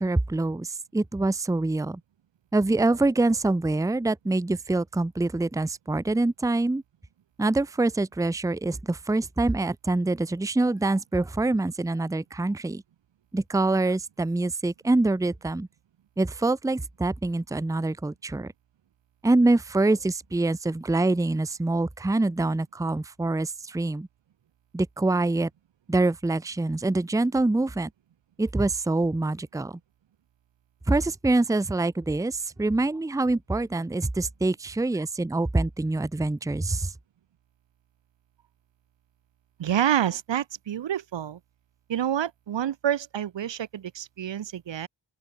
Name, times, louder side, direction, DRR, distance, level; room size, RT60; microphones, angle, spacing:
voice 1, 0.0-2.0 2.5-6.8 7.4-12.8 13.3-15.7 16.2-18.5 19.2-24.1 24.7-25.5 25.9-27.9 28.4-29.8 30.9-36.9, right 2 dB, 10° right, 0.7 m, -25 dB
voice 2, 39.6-41.4 41.9-44.9, right 10 dB, 80° right, 1.4 m, -28 dB
open air
cardioid pair, 55°, 43 cm